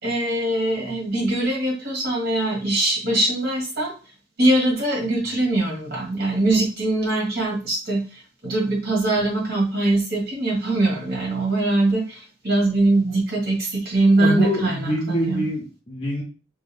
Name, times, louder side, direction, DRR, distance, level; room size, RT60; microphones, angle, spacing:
voice 1, 0.0-3.9 4.4-15.4, right 2 dB, 55° right, -2 dB, 2.1 m, -22 dB
voice 2, 14.2-16.2, left 1 dB, 30° left, -5 dB, 0.9 m, -25 dB
3.9 x 3.5 x 3.5 m, 0.33 s
head